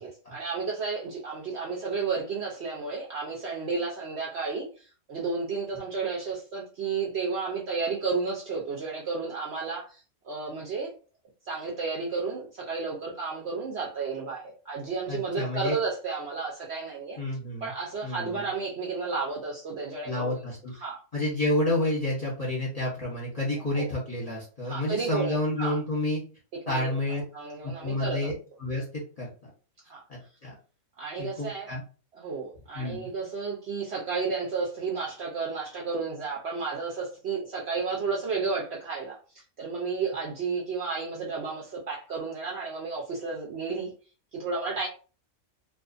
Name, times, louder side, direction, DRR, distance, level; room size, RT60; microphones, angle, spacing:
voice 1, 0.0-10.0 10.2-10.9 11.4-17.2 17.6-20.4 20.7-21.0 23.7-23.9 24.6-25.8 26.7-28.3 29.9-30.0 31.0-31.7 32.1-39.2 39.6-43.9 44.3-44.9, right 4 dB, 60° right, 0.7 m, -32 dB
voice 2, 15.1-15.8 17.2-17.7 18.0-18.4 20.1-20.7 21.1-26.2 26.7-27.2 27.6-28.3 28.6-28.8 29.2-29.5 30.1-30.5 31.2-31.8 32.7-33.1, left 1 dB, 35° left, 0.8 m, -29 dB
2.4 x 2.4 x 2.4 m
omnidirectional pair, 1.5 m